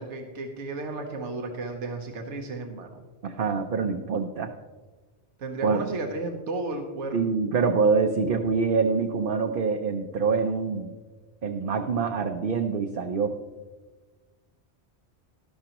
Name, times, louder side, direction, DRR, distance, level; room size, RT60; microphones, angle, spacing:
voice 1, 0.0-3.0 5.4-7.2, right 2 dB, 85° right, 4 dB, 1.3 m, -33 dB
voice 2, 3.2-4.5 5.6-5.8 7.1-10.9 11.4-13.3, right 5 dB, 55° right, 4 dB, 0.8 m, -25 dB
12.5 x 12.0 x 3.0 m, 1.3 s
omnidirectional pair, 1.2 m